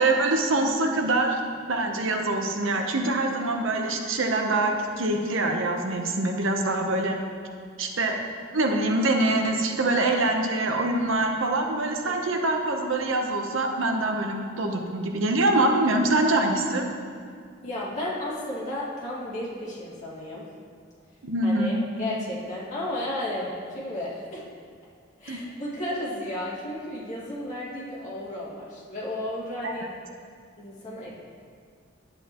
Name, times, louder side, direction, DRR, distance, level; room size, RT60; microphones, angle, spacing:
voice 1, 0.0-1.4 1.7-7.2 7.8-8.2 8.5-16.9 21.2-21.8 25.3-25.4 29.6-29.7, right 2 dB, 75° right, 3 dB, 0.8 m, -24 dB
voice 2, 17.6-20.4 21.4-24.4 25.2-29.9 30.6-31.1, left 1 dB, 35° left, -8 dB, 2.0 m, -33 dB
10.5 x 7.9 x 3.0 m, 2.1 s
head